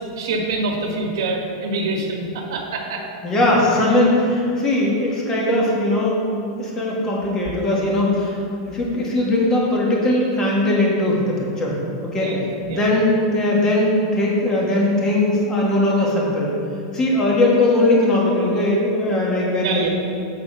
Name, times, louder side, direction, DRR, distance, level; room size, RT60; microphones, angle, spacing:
voice 1, 0.0-3.0 12.2-12.8 19.6-19.9, right 3 dB, 75° right, 1 dB, 1.3 m, -25 dB
voice 2, 3.2-6.3 6.6-8.4 8.7-11.8 12.1-12.3 12.7-16.5 16.9-19.9, left 1 dB, 20° left, -3 dB, 1.4 m, -19 dB
8.2 x 4.2 x 5.5 m, 2.6 s
supercardioid pair, 155°, 2 cm